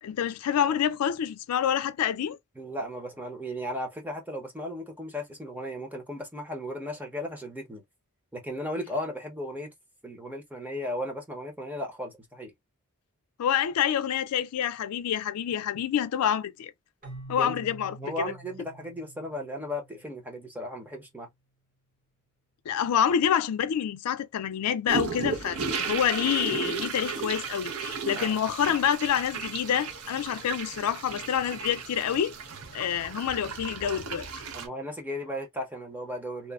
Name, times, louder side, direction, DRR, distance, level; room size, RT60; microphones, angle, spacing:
voice 1, 0.0-2.4 13.4-16.7 17.3-18.0 22.7-25.6 25.9-32.3 32.7-34.3, left 9 dB, 85° left, 0.4 m, -27 dB
voice 2, 2.6-7.8 8.3-9.7 10.0-12.5 17.4-17.5 18.0-21.3 28.2-28.4 34.5-36.5, equal, 10° right, 0.7 m, -35 dB
Keyboard (musical), 17.0-20.7, right 2 dB, 35° right, 1.1 m, -47 dB
sound 1, 24.9-34.7, right 5 dB, 75° right, 0.6 m, -35 dB
2.9 x 2.1 x 2.3 m
head